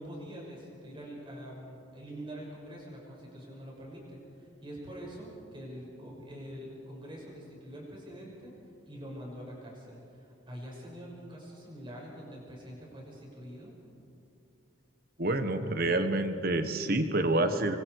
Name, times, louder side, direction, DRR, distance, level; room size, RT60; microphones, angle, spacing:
voice 1, 0.0-8.5 8.9-13.7, equal, 25° right, -3 dB, 6.2 m, -45 dB
voice 2, 15.2-17.8, right 2 dB, 45° right, 8 dB, 1.4 m, -28 dB
26.0 x 24.5 x 4.9 m, 2.7 s
head